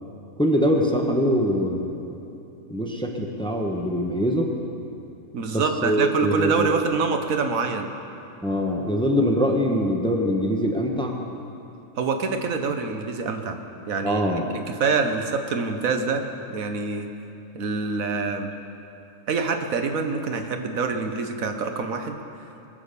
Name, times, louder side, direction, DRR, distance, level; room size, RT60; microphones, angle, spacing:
voice 1, 0.4-2.2 2.7-4.5 5.5-6.7 8.4-11.2 14.0-14.4, equal, 5° left, 1 dB, 1.1 m, -23 dB
voice 2, 5.3-7.9 12.0-13.6 13.9-14.2 14.5-17.1 17.5-18.5 19.3-22.2, right 4 dB, 85° right, 6 dB, 1.4 m, -25 dB
21.0 x 7.8 x 6.8 m, 2.8 s
omnidirectional pair, 1.4 m